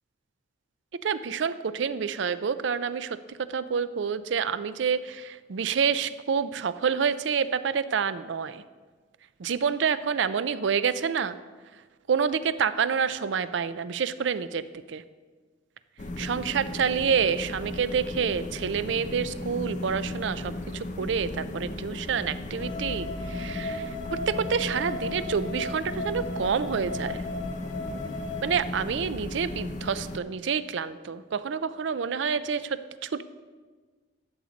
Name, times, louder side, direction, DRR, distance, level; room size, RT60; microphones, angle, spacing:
voice 1, 1.0-8.6 9.4-11.4 12.1-15.0 16.2-27.2 28.4-33.2, right 6 dB, 70° right, 14 dB, 0.4 m, -28 dB
sound 1, 16.0-30.2, left 2 dB, 40° left, 0.7 m, -36 dB
sound 2, 22.6-28.6, left 2 dB, 75° left, 1.1 m, -37 dB
13.5 x 7.9 x 4.0 m, 1.4 s
head